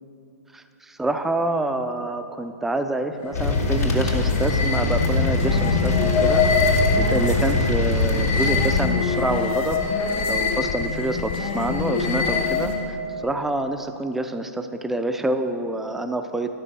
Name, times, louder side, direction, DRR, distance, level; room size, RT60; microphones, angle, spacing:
voice 1, 0.5-9.8 10.3-16.5, right 2 dB, 5° right, 7 dB, 0.4 m, -27 dB
sound 1, 3.2-12.9, left 5 dB, 40° left, 1.1 m, -24 dB
sound 2, 3.3-8.8, left 2 dB, 90° left, 2.5 m, -22 dB
12.0 x 6.0 x 6.0 m, 2.6 s
hypercardioid pair, 130°, 9 cm